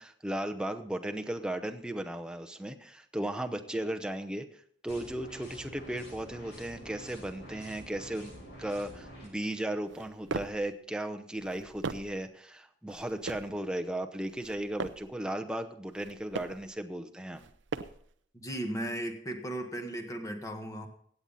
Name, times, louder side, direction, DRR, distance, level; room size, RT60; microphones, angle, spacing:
voice 1, 0.0-4.5 4.8-8.3 8.6-17.4, right 1 dB, 5° right, 5 dB, 0.8 m, -36 dB
sound 1, 4.9-9.3, equal, 65° left, 6.6 m, -48 dB
sound 2, 9.9-10.7 11.4-12.2 12.9-13.6 14.3-15.1 15.9-16.7 17.3-18.1, right 4 dB, 75° right, 0.6 m, -39 dB
voice 2, 18.3-20.9, right 1 dB, 20° left, 5 dB, 1.6 m, -36 dB
16.0 x 9.0 x 4.1 m, 0.63 s
head